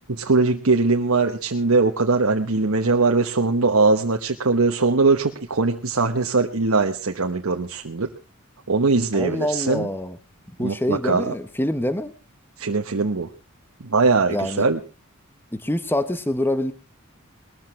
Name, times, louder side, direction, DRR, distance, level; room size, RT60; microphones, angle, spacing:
voice 1, 0.1-8.1 8.7-9.9 10.6-11.3 12.6-13.3 13.8-14.8, right 3 dB, 85° right, 3 dB, 1.1 m, -21 dB
voice 2, 9.1-10.2 10.6-12.1 14.3-14.6 15.5-16.7, left 1 dB, 10° left, 11 dB, 1.1 m, -25 dB
20.5 x 14.0 x 3.2 m, 0.33 s
head